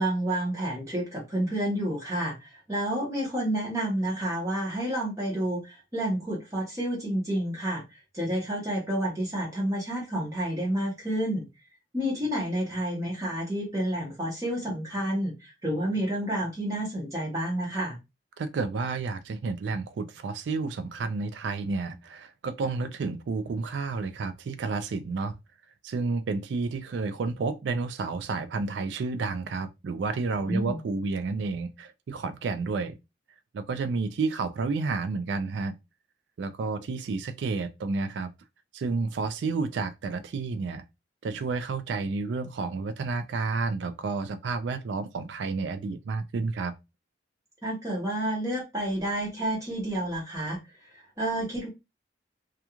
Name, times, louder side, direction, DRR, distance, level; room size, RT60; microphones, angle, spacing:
voice 1, 0.0-7.8 8.1-11.4 11.9-18.0 30.5-30.8 47.6-50.6 51.2-51.7, right 1 dB, 15° right, 0.8 m, -29 dB
voice 2, 18.4-25.4 25.8-33.0 33.5-35.7 36.4-38.3 38.7-40.8 41.2-46.7, right 4 dB, 70° right, 0.3 m, -30 dB
2.4 x 2.2 x 2.8 m
head